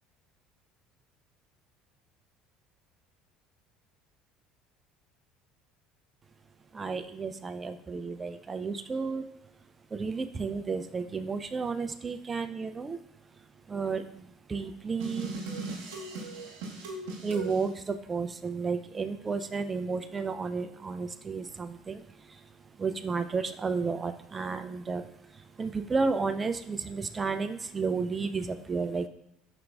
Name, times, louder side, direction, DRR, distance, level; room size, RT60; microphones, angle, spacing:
voice 1, 6.7-9.2 9.9-13.0 13.7-15.3 17.2-22.0 22.8-25.1 25.6-29.1, right 4 dB, 25° right, 9 dB, 0.3 m, -32 dB
sound 1, 15.0-17.6, right 3 dB, 75° right, 0.9 m, -38 dB
5.1 x 3.8 x 2.3 m, 0.80 s
hypercardioid pair, 65°, 0 cm